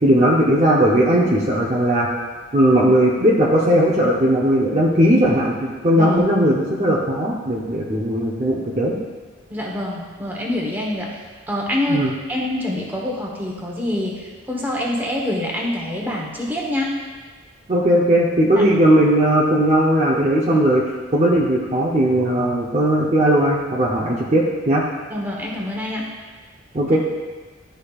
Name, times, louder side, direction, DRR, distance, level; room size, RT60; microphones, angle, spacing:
voice 1, 0.0-2.1 2.5-9.0 11.9-12.1 17.7-20.8 21.1-24.8 26.7-27.0, right 1 dB, 30° right, -4 dB, 0.7 m, -17 dB
voice 2, 9.5-11.2 11.5-12.0 12.3-16.9 18.6-18.7 25.1-26.0 26.9-27.0, left 1 dB, 10° right, -3 dB, 1.0 m, -26 dB
12.0 x 5.1 x 2.4 m, 1.4 s
head